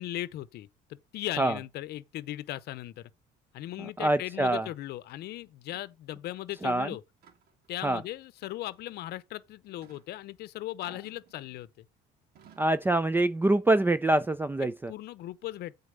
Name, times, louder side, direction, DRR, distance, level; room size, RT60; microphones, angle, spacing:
voice 1, 0.0-3.1 3.5-7.0 7.7-11.9 14.9-15.7, left 15 dB, 70° left, 0.7 m, -38 dB
voice 2, 4.0-4.7 6.6-6.9 7.8-8.0 12.6-14.9, right 2 dB, 10° right, 0.5 m, -25 dB
sound 1, 5.1-5.2 5.7-6.0 6.4-6.8 7.2-7.7 8.4-9.0 9.8-10.1 10.8-11.7 12.4-12.9, right 7 dB, 70° right, 2.8 m, -59 dB
8.4 x 4.1 x 6.8 m
cardioid pair, 110°, 17 cm